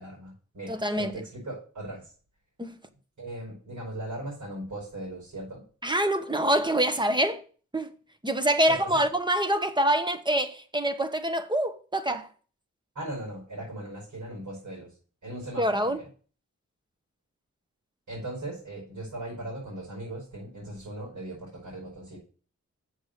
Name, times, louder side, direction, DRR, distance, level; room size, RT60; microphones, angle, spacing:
voice 1, 0.0-2.1 3.2-5.6 8.7-9.0 12.9-15.0 15.2-16.1 18.1-22.2, right 1 dB, 75° right, 5.3 m, -38 dB
voice 2, 0.7-1.1 2.6-2.7 5.8-7.4 7.7-7.9 8.2-12.3 15.6-16.0, right 1 dB, 15° right, 1.1 m, -25 dB
7.2 x 6.7 x 6.6 m
wide cardioid pair, 95°, 30 cm